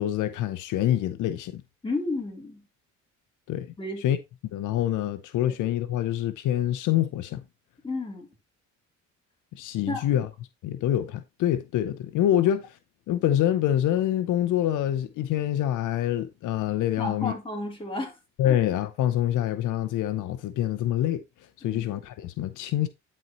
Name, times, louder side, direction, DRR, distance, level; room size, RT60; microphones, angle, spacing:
voice 1, 0.0-1.6 3.5-3.7 4.0-4.2 4.5-7.4 9.5-10.3 10.6-12.8 13.1-17.3 18.4-21.2 21.6-22.9, left 12 dB, 80° left, 0.7 m, -26 dB
voice 2, 1.8-2.6 3.8-4.0 5.5-5.6 7.8-8.3 9.9-10.2 17.0-18.2 18.4-18.6 21.6-21.8, left 2 dB, 15° left, 3.5 m, -32 dB
11.0 x 4.4 x 3.0 m
cardioid pair, 90°, 30 cm